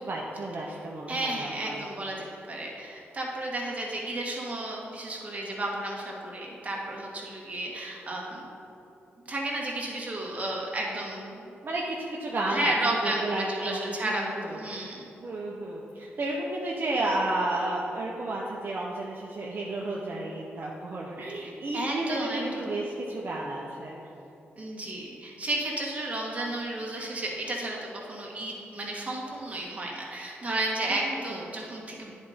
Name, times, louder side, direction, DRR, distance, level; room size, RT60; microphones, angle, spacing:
voice 1, 0.0-1.9 11.6-14.6 15.2-24.0 30.9-31.4, right 2 dB, 50° right, -3 dB, 0.9 m, -32 dB
voice 2, 1.1-8.5 9.2-11.5 12.5-15.1 21.4-22.7 24.6-32.1, right 1 dB, 30° right, -3 dB, 1.8 m, -33 dB
9.4 x 4.1 x 5.1 m, 2.9 s
cardioid pair, 65°, 4 cm